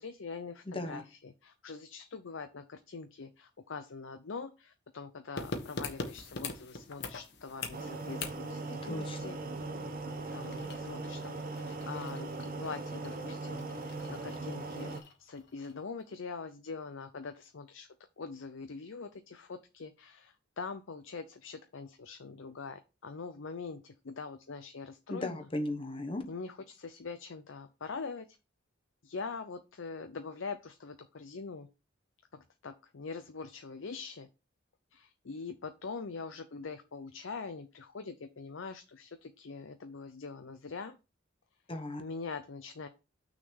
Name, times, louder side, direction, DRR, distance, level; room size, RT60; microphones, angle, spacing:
voice 1, 0.0-9.4 10.3-12.3 12.6-13.7 14.1-17.9 18.2-25.4 26.3-28.4 29.0-31.7 32.3-34.3 34.9-41.0 42.0-42.9, left 4 dB, 75° left, 8 dB, 0.6 m, -43 dB
voice 2, 0.7-1.0 8.8-9.2 25.1-26.2 41.7-42.0, left 1 dB, 25° left, 6 dB, 1.1 m, -36 dB
sound 1, 5.4-15.8 16.1-16.2, left 3 dB, 60° left, 1.2 m, -44 dB
sound 2, 7.7-15.0, right 2 dB, 45° right, 1.0 m, -39 dB
6.2 x 3.9 x 6.2 m, 0.29 s
head